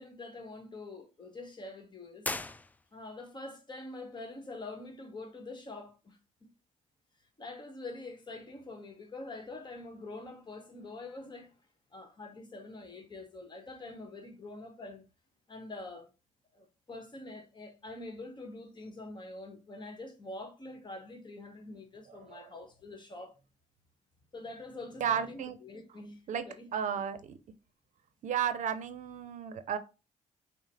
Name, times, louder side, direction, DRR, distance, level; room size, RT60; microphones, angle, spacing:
voice 1, 0.0-2.3 2.9-6.2 7.4-11.5 11.9-15.0 15.5-16.1 16.5-23.4 24.3-26.9, left 2 dB, 35° left, 1.2 m, -45 dB
sound 1, 2.2-3.3, left 2 dB, 10° left, 0.3 m, -39 dB
voice 2, 25.0-25.6 26.3-26.4 26.7-27.2 28.2-29.8, right 8 dB, 70° right, 0.6 m, -33 dB
5.4 x 2.1 x 3.4 m
cardioid pair, 75°, 13 cm